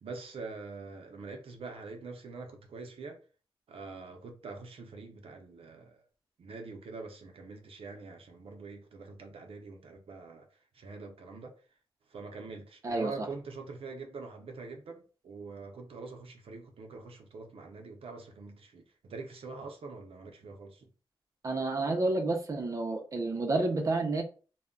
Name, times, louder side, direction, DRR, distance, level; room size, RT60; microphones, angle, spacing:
voice 1, 0.0-3.2 3.7-6.0 6.4-10.5 10.7-11.6 12.1-20.9, right 4 dB, 85° right, 0.5 m, -44 dB
voice 2, 12.8-13.3 21.4-24.2, right 2 dB, 35° right, 0.5 m, -30 dB
2.2 x 2.1 x 3.6 m
wide cardioid pair, 135°, 9 cm